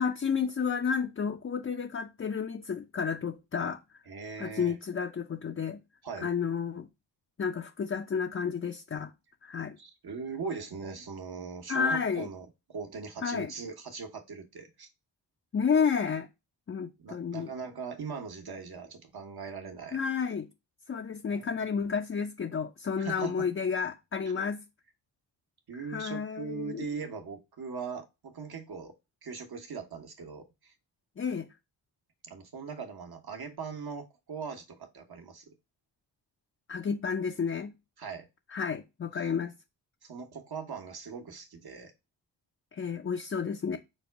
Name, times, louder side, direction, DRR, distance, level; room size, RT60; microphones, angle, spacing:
voice 1, 0.0-3.8 4.4-5.8 6.2-6.9 7.4-9.1 9.4-9.8 11.7-12.3 13.2-13.5 15.5-16.3 16.7-17.5 19.9-20.5 20.9-24.6 25.9-26.9 31.2-31.5 36.7-37.7 38.5-39.5 42.7-43.8, left 6 dB, 30° left, 0.5 m, -31 dB
voice 2, 4.1-4.8 6.0-6.3 9.8-14.9 17.0-20.0 21.3-21.5 23.0-23.5 25.7-28.9 29.2-30.7 32.2-35.5 38.0-38.3 39.1-39.3 40.0-41.9, right 5 dB, 55° right, 1.3 m, -40 dB
5.3 x 2.2 x 4.5 m
supercardioid pair, 45°, 46 cm